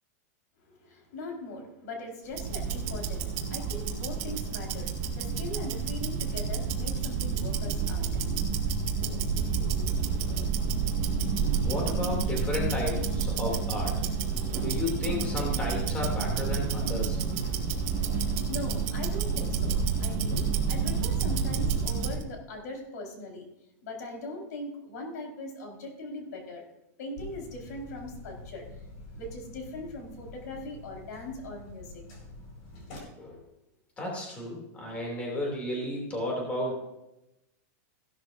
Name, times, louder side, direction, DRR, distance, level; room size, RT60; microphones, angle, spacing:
voice 1, 0.7-8.1 8.5-8.9 9.7-10.4 10.8-11.0 18.5-19.7 20.0-23.5 23.8-26.6 27.0-28.7 29.1-32.0, left 2 dB, 75° left, 1 dB, 4.5 m, -41 dB
Tick-tock, 2.3-22.2, right 5 dB, 45° right, 2.1 m, -29 dB
voice 2, 11.6-13.9 14.5-17.3 33.2-33.4 34.0-36.8, left 2 dB, 15° left, -2 dB, 2.8 m, -33 dB
sound 1, 27.2-33.0, left 2 dB, 40° left, 4.8 m, -46 dB
16.5 x 12.5 x 2.6 m, 0.91 s
supercardioid pair, 170°, 9 cm